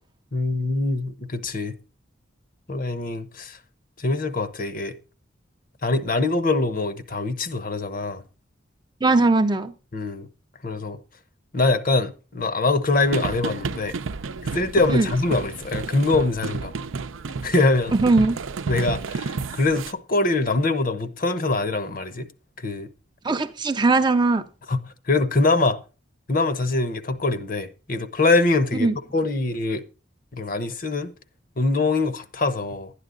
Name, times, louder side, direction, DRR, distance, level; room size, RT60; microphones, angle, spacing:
voice 1, 0.3-1.7 2.7-3.6 4.0-4.9 5.8-8.2 9.9-10.3 10.6-11.0 11.5-14.0 14.4-16.7 17.4-18.0 18.7-22.3 22.6-22.9 24.7-24.8 25.1-25.8 26.3-29.8 30.3-31.1 31.6-32.9, left 2 dB, 45° left, 1.0 m, -23 dB
voice 2, 9.0-9.7 14.9-15.1 18.0-18.4 23.2-24.5 28.8-28.9, right 3 dB, 20° right, 0.5 m, -19 dB
sound 1, 13.0-19.9, right 4 dB, 90° right, 0.6 m, -31 dB
12.0 x 9.9 x 3.9 m
head